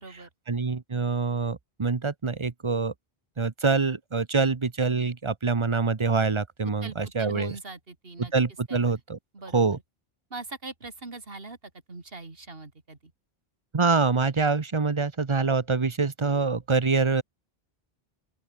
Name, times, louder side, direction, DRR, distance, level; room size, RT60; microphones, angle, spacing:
voice 1, 0.5-2.9 3.4-7.6 8.2-9.2 9.5-9.8 13.7-17.2, right 4 dB, 30° right, 0.9 m, -25 dB
voice 2, 6.8-8.3 8.7-9.0 9.3-9.8 10.3-11.6 11.9-13.1, right 3 dB, 65° right, 3.1 m, -41 dB
open air
omnidirectional pair, 1.0 m